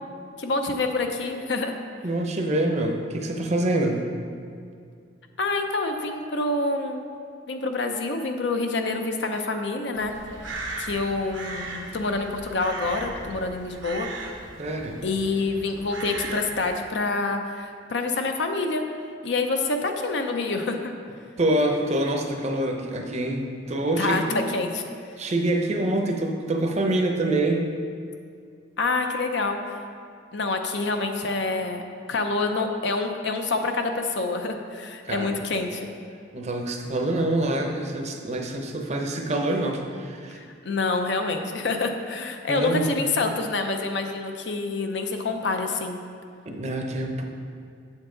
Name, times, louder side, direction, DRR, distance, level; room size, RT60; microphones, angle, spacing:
voice 1, 0.4-1.8 5.4-7.0 7.5-10.1 10.8-14.1 15.0-18.9 19.2-20.9 24.0-24.2 24.5-24.8 28.8-29.8 30.3-31.8 32.1-35.9 40.3-46.0, left 3 dB, 65° left, 5 dB, 0.6 m, -27 dB
voice 2, 2.0-4.1 14.6-15.0 21.4-24.5 25.2-27.7 35.0-35.4 36.3-40.4 42.5-42.9 46.5-47.2, right 1 dB, 35° right, 3 dB, 0.7 m, -26 dB
Crow, 9.9-16.8, right 2 dB, 80° right, 0.9 m, -38 dB
7.5 x 7.3 x 3.8 m, 2.3 s
head